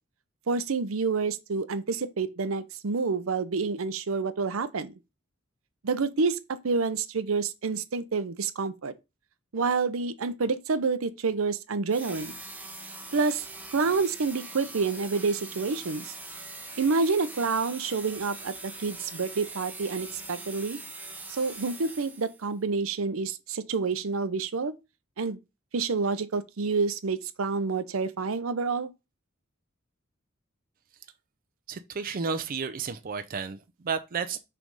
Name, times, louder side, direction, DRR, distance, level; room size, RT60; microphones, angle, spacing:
voice 1, 0.5-4.9 5.8-6.4 6.6-8.9 9.5-12.3 13.1-13.4 13.7-16.1 16.8-20.8 21.3-24.7 25.2-25.4 25.7-28.9, right 4 dB, 85° right, 0.7 m, -28 dB
sound 1, 11.9-22.5, right 3 dB, 10° right, 1.0 m, -42 dB
voice 2, 31.7-34.4, right 5 dB, 45° right, 0.5 m, -32 dB
6.1 x 3.4 x 5.3 m
head